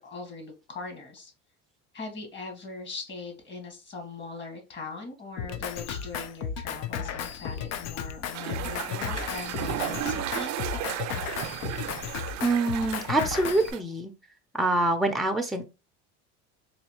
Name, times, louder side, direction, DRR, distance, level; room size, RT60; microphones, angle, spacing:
voice 1, 0.0-1.3 1.9-10.5, left 3 dB, 30° left, 3 dB, 1.8 m, -40 dB
Drum kit, 5.4-13.7, left 8 dB, 50° left, 0.6 m, -34 dB
sound 1, 8.3-13.8, right 12 dB, 55° right, 0.6 m, -34 dB
voice 2, 12.4-14.1 14.5-15.7, right 2 dB, ahead, 5 dB, 0.7 m, -25 dB
4.0 x 2.8 x 3.1 m, 0.28 s
supercardioid pair, 95°, 35 cm